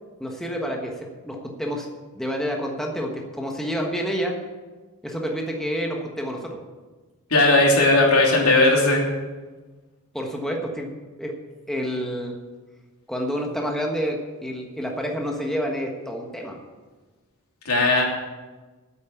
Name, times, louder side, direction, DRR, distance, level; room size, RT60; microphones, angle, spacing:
voice 1, 0.2-1.9 2.1-4.4 5.0-6.6 10.1-10.9 11.2-11.3 11.7-12.4 13.1-16.6, equal, ahead, 0 dB, 1.3 m, -28 dB
voice 2, 7.3-9.0 17.6-18.0, left 2 dB, 85° left, -1 dB, 3.0 m, -17 dB
9.6 x 8.2 x 8.3 m, 1.3 s
head